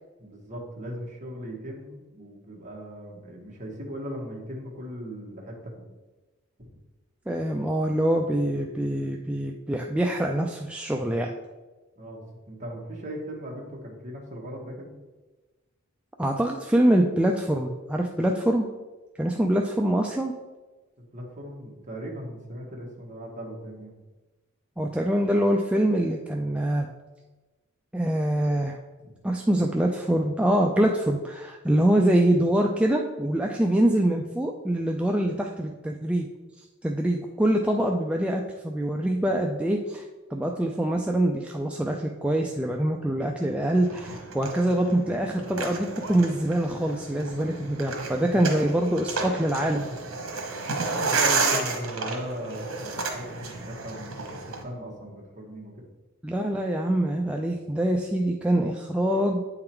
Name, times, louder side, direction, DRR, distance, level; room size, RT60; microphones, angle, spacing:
voice 1, 0.2-5.8 6.6-6.7 12.0-14.9 21.0-23.9 48.3-48.4 50.9-55.8, equal, 35° right, -1 dB, 1.4 m, -38 dB
voice 2, 7.3-11.3 16.2-18.7 19.2-20.3 24.8-26.9 27.9-28.8 29.2-36.3 36.8-40.0 40.3-49.9 56.2-59.4, right 1 dB, 5° right, 1 dB, 0.3 m, -24 dB
sound 1, 43.8-54.6, right 3 dB, 85° right, 1.1 m, -31 dB
8.6 x 3.9 x 4.4 m, 1.2 s
head